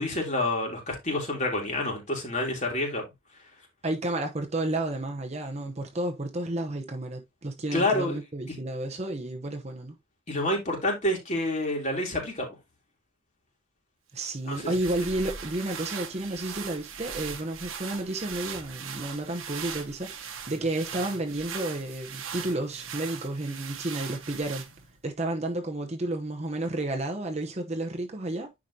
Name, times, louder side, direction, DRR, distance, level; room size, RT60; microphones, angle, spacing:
voice 1, 0.0-3.0 7.7-8.2 8.5-8.6 10.3-12.5 14.4-14.7, left 1 dB, 35° left, 3.2 m, -28 dB
voice 2, 3.8-10.0 14.1-24.7 25.0-28.6, right 2 dB, 30° right, 0.9 m, -31 dB
sound 1, 14.3-25.0, right 7 dB, 90° right, 1.4 m, -40 dB
10.0 x 5.0 x 2.8 m
head